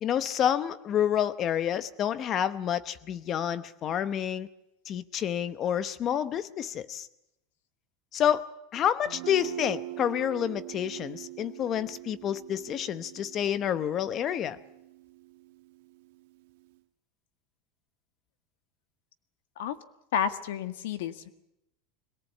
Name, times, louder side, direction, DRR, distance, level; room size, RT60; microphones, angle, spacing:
voice 1, 0.0-4.5 4.9-7.1 8.1-8.5 8.7-14.6, left 9 dB, 25° left, 15 dB, 0.9 m, -29 dB
Guitar, 9.1-16.7, right 18 dB, 70° right, 1.4 m, -43 dB
voice 2, 20.1-21.3, left 8 dB, 85° left, 11 dB, 1.7 m, -30 dB
22.5 x 18.5 x 8.5 m, 0.84 s
supercardioid pair, 170°, 0 cm